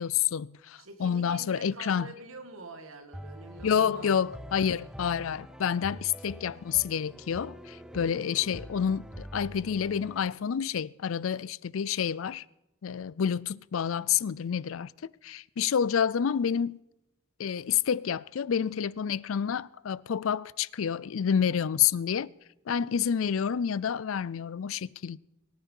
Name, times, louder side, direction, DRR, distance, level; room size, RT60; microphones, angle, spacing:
voice 1, 0.0-2.1 3.6-12.4 12.8-16.8 17.4-22.3 22.7-25.2, left 8 dB, 70° left, 0.4 m, -29 dB
voice 2, 0.8-4.2, right 3 dB, 80° right, 1.9 m, -46 dB
sound 1, 3.1-10.3, equal, 5° right, 0.6 m, -45 dB
22.5 x 9.7 x 5.5 m
head